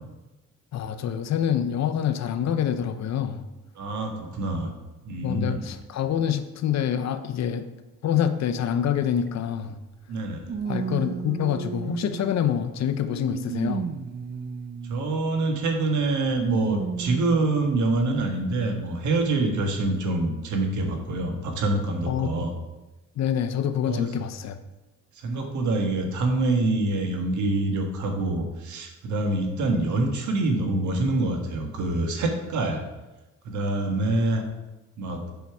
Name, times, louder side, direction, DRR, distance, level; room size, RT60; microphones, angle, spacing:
voice 1, 0.7-3.4 5.2-7.7 8.0-9.8 10.7-13.9 22.1-22.5 23.2-24.6, left 9 dB, 60° left, 9 dB, 0.7 m, -26 dB
voice 2, 3.7-4.7 5.0-5.6 10.1-10.5 14.9-22.5 23.9-24.1 25.1-32.8 33.4-34.4 35.0-35.2, right 2 dB, 75° right, 3 dB, 1.5 m, -26 dB
sound 1, 9.2-9.3 10.4-12.5 13.1-15.1 16.3-17.7 18.4-18.5 19.6-19.7, right 6 dB, 35° right, 0.5 m, -33 dB
7.0 x 5.5 x 4.7 m, 1.1 s
cardioid pair, 90°, 30 cm